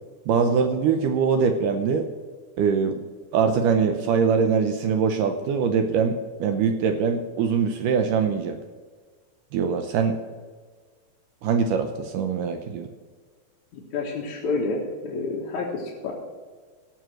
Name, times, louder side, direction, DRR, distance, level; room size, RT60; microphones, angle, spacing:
voice 1, 0.3-2.1 2.6-3.0 3.3-8.6 9.5-10.2 11.4-12.9, right 6 dB, 75° right, 7 dB, 2.1 m, -23 dB
voice 2, 13.7-16.1, left 3 dB, 60° left, -3 dB, 2.6 m, -29 dB
16.5 x 6.3 x 6.3 m, 1.5 s
omnidirectional pair, 4.3 m